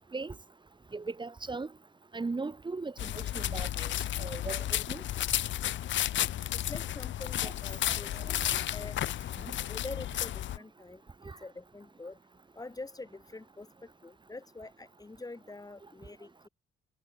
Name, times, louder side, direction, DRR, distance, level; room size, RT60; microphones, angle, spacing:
voice 1, 0.9-1.7 2.1-3.9 4.2-5.0 7.4-7.5 7.9-8.0 8.3-8.4 11.2-11.3, right 3 dB, 25° right, 2.0 m, -38 dB
sound 1, 3.0-10.6, left 13 dB, 70° left, 0.9 m, -33 dB
voice 2, 6.5-9.1 9.7-11.0 11.4-12.2 12.5-16.5, left 2 dB, 20° left, 3.3 m, -45 dB
cardioid pair, 90°, 20 cm